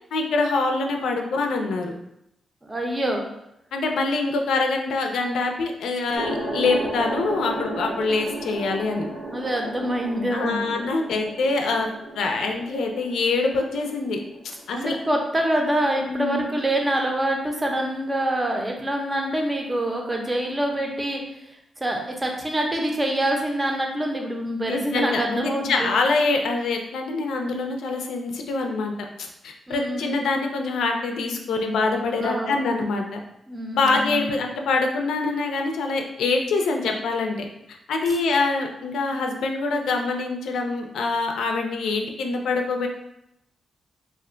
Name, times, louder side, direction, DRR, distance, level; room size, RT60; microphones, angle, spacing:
voice 1, 0.1-1.9 3.7-9.1 10.3-11.9 12.2-14.2 14.7-15.0 16.0-16.5 24.7-28.9 29.2-33.2 33.7-37.5 37.9-42.9, left 3 dB, 85° left, 3 dB, 0.4 m, -25 dB
voice 2, 2.6-3.2 9.3-10.7 14.8-21.2 21.8-25.9 29.7-30.2 32.2-32.6 33.5-34.3, right 1 dB, 20° right, 1 dB, 0.6 m, -25 dB
sound 1, 6.1-14.9, right 1 dB, 85° right, 1.2 m, -34 dB
2.4 x 2.2 x 3.7 m, 0.82 s
cardioid pair, 105°, 0 cm